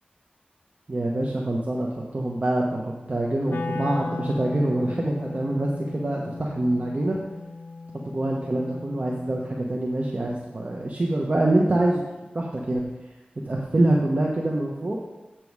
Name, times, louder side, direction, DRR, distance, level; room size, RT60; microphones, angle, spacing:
voice 1, 0.9-1.9 2.1-2.8 3.1-7.2 8.0-12.0 12.3-12.9 13.5-15.0, right 1 dB, 45° right, -2 dB, 1.0 m, -25 dB
Wind instrument woodwind instrument, 3.5-9.5, left 3 dB, 75° left, 0.6 m, -36 dB
7.6 x 7.3 x 4.8 m, 1.1 s
wide cardioid pair, 75°, 3 cm